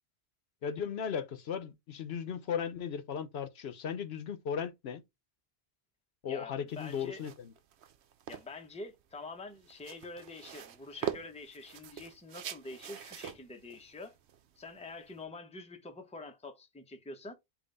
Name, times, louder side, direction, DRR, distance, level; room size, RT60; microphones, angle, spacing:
voice 1, 0.6-5.0 6.2-7.5, left 7 dB, 70° left, 0.9 m, -36 dB
voice 2, 6.3-7.2 8.3-14.2 14.6-17.3, left 3 dB, 5° left, 0.7 m, -46 dB
sound 1, 6.7-15.2, right 9 dB, 85° right, 0.9 m, -44 dB
5.3 x 2.5 x 4.0 m
omnidirectional pair, 1.1 m